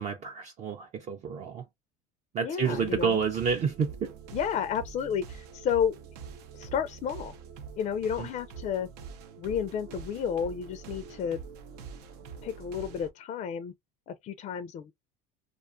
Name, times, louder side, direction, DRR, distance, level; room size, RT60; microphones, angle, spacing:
voice 1, 0.0-1.6 2.3-4.1 8.2-8.3, right 6 dB, 40° right, 0.5 m, -29 dB
voice 2, 2.4-3.2 4.3-6.0 6.5-7.3 7.8-8.9 9.4-11.4 12.4-13.7 14.1-14.9, left 8 dB, 40° left, 0.4 m, -31 dB
sound 1, 2.6-13.1, right 6 dB, 85° right, 0.6 m, -45 dB
2.4 x 2.3 x 2.4 m
supercardioid pair, 100°, 19 cm